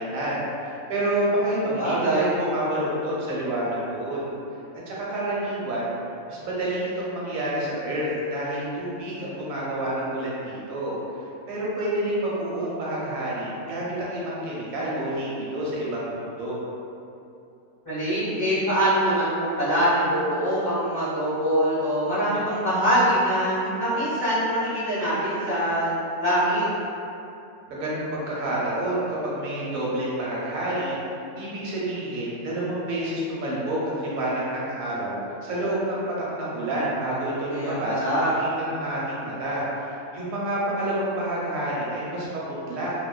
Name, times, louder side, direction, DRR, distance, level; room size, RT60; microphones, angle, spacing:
voice 1, 0.0-4.3 4.9-6.0 6.3-16.6 27.7-31.0 31.4-36.0 36.3-42.4 42.7-42.9, right 1 dB, 70° right, -6 dB, 1.0 m, -28 dB
voice 2, 1.8-2.3 17.8-26.6 37.5-38.3, equal, 10° left, -13 dB, 1.0 m, -24 dB
2.5 x 2.3 x 2.2 m, 2.7 s
omnidirectional pair, 1.5 m